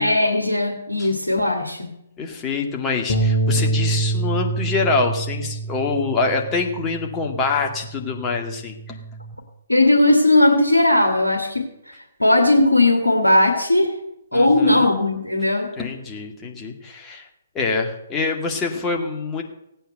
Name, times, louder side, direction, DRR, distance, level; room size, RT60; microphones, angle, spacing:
voice 1, 0.0-1.9 9.7-13.9 14.3-15.7, left 1 dB, 80° left, 6 dB, 1.9 m, -18 dB
voice 2, 2.2-9.0 14.3-14.9 15.8-17.3 17.5-19.4, left 4 dB, 15° left, 1 dB, 2.2 m, -25 dB
sound 1, 3.1-9.3, right 2 dB, 50° left, 2.3 m, -26 dB
16.5 x 9.1 x 6.7 m, 0.83 s
figure-of-eight pair, 130°, 0 cm